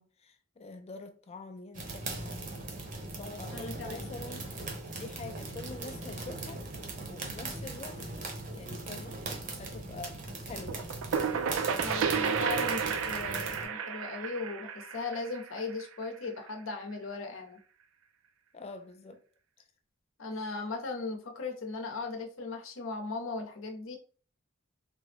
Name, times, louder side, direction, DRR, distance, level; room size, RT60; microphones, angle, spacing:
voice 1, 0.0-2.5 3.2-4.5 4.9-6.7 7.1-9.2 9.6-10.9 18.5-19.2 20.3-20.6, left 3 dB, 30° left, 0.3 m, -46 dB
sound 1, 1.7-13.7, right 2 dB, 40° right, 0.7 m, -40 dB
voice 2, 3.5-4.1 11.8-17.6 20.2-24.0, left 3 dB, 65° left, 0.7 m, -38 dB
sound 2, 10.7-16.2, right 6 dB, 70° right, 0.3 m, -32 dB
3.4 x 2.0 x 3.2 m
head